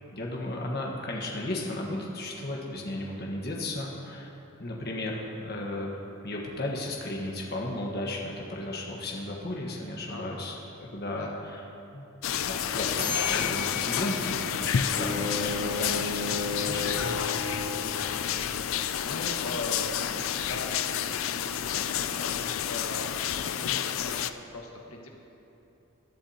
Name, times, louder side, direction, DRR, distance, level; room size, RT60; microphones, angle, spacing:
voice 1, 0.1-4.3 4.6-5.9 6.2-10.5 10.8-11.6 11.9-17.1, left 1 dB, 50° left, -2 dB, 1.3 m, -35 dB
voice 2, 10.1-10.5 11.0-11.4 15.1-15.4 17.5-25.1, left 1 dB, 80° left, 0 dB, 1.5 m, -41 dB
sound 1, 12.2-24.3, left 9 dB, 65° left, 0.4 m, -30 dB
sound 2, 13.0-15.7, left 8 dB, 30° left, 2.9 m, -36 dB
Bowed string instrument, 14.9-18.1, left 2 dB, 75° right, 2.4 m, -33 dB
19.0 x 11.5 x 2.9 m, 2.9 s
head